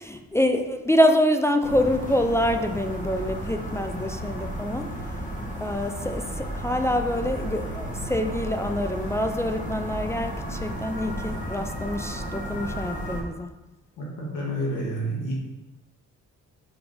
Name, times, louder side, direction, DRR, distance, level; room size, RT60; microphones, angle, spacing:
voice 1, 0.0-4.9 5.6-13.5, left 1 dB, 10° left, 5 dB, 0.4 m, -26 dB
sound 1, 1.6-13.2, equal, 25° left, 1.9 m, -33 dB
voice 2, 14.0-15.3, equal, 85° left, -4 dB, 1.8 m, -29 dB
5.1 x 5.0 x 5.1 m, 1.1 s
cardioid pair, 90°, 30 cm